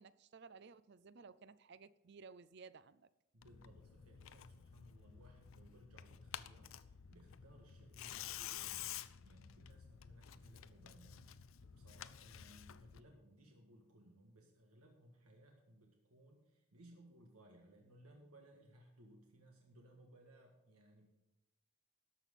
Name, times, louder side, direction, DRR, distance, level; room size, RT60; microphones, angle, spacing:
voice 1, 0.0-3.1, right 5 dB, 50° right, 0.5 m, -57 dB
voice 2, 3.3-21.1, right 1 dB, 85° right, 1.7 m, -63 dB
Tearing, 3.4-13.0, left 10 dB, 65° left, 0.5 m, -51 dB
13.0 x 5.9 x 8.2 m
head